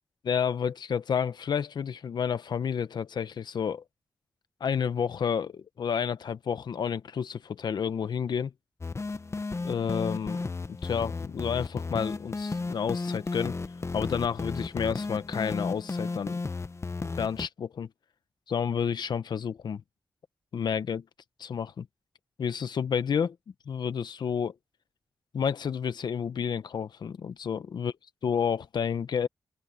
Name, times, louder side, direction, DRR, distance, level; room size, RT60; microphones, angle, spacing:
voice 1, 0.3-3.8 4.6-8.5 9.6-13.5 13.9-16.4 17.0-17.9 18.5-19.8 20.5-21.0 21.4-21.9 22.4-23.3 23.7-24.5 25.3-27.9 28.2-29.3, left 7 dB, 75° left, 1.1 m, -30 dB
sound 1, 8.8-17.5, left 3 dB, 40° left, 1.0 m, -34 dB
open air
cardioid pair, 50°, 7 cm